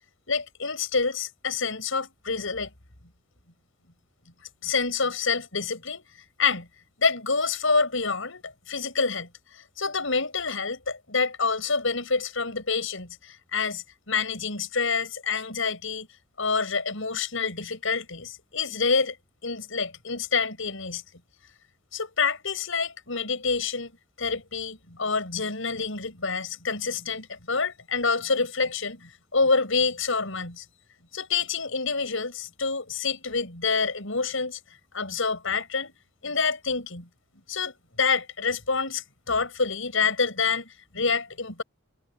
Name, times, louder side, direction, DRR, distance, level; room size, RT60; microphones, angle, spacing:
voice 1, 0.3-2.7 4.6-6.1 6.4-6.7 7.0-9.3 9.5-16.1 16.4-19.2 19.4-21.0 21.9-23.9 24.2-30.6 31.1-34.6 34.9-35.9 36.2-37.1 37.5-41.6, left 4 dB, 75° left, 6.0 m, -27 dB
head